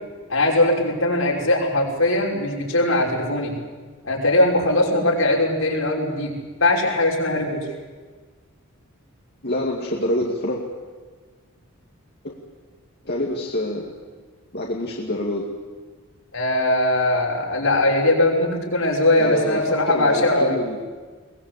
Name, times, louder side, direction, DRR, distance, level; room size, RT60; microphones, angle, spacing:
voice 1, 0.3-3.5 4.0-7.6 16.3-20.6, left 1 dB, 75° left, -1 dB, 5.9 m, -20 dB
voice 2, 9.4-10.6 12.2-12.3 13.1-13.9 14.5-15.5 19.2-20.8, left 1 dB, 50° left, -2 dB, 2.4 m, -26 dB
22.5 x 21.0 x 8.4 m, 1.4 s
head